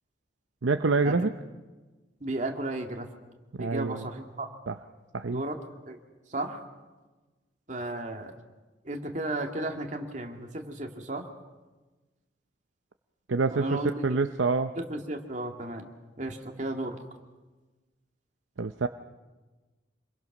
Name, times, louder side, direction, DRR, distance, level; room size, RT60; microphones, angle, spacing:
voice 1, 0.6-1.3 3.6-4.1 4.7-4.8 5.1-5.4 13.3-14.7 18.6-18.9, right 3 dB, 90° right, 7 dB, 0.7 m, -26 dB
voice 2, 2.2-3.1 3.6-4.5 5.3-5.6 5.9-6.0 6.3-6.6 7.7-8.3 8.9-11.2 13.5-14.2 14.8-15.9 16.2-17.0, right 2 dB, 40° right, 3 dB, 2.2 m, -34 dB
27.0 x 22.0 x 6.1 m, 1.2 s
head